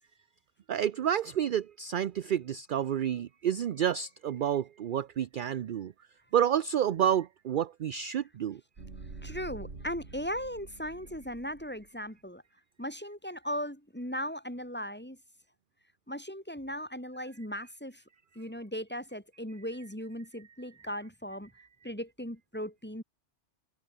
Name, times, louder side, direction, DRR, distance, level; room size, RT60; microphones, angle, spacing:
voice 1, 0.7-5.9 6.3-8.6, right 9 dB, 55° right, 0.7 m, -29 dB
sound 1, 8.7-11.9, right 3 dB, 75° right, 3.0 m, -46 dB
voice 2, 9.2-12.4 12.8-15.2 16.1-18.0 18.3-21.5 21.8-23.0, equal, 10° left, 4.3 m, -38 dB
omnidirectional pair, 1.2 m